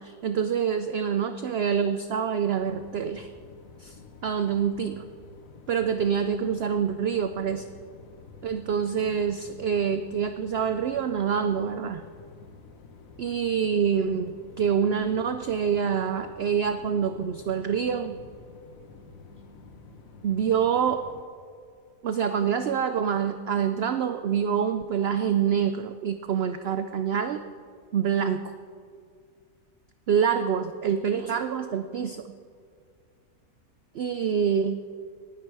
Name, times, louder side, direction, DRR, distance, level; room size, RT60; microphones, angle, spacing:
voice 1, 0.0-3.3 3.8-4.0 4.2-5.0 5.7-7.6 8.4-12.0 13.2-18.2 20.2-21.0 22.0-27.4 27.9-28.5 30.1-32.2 33.9-34.8, right 7 dB, 65° right, 9 dB, 0.6 m, -26 dB
sound 1, 2.6-21.2, left 4 dB, 65° left, 1.4 m, -49 dB
18.5 x 9.8 x 4.8 m, 2.1 s
omnidirectional pair, 1.6 m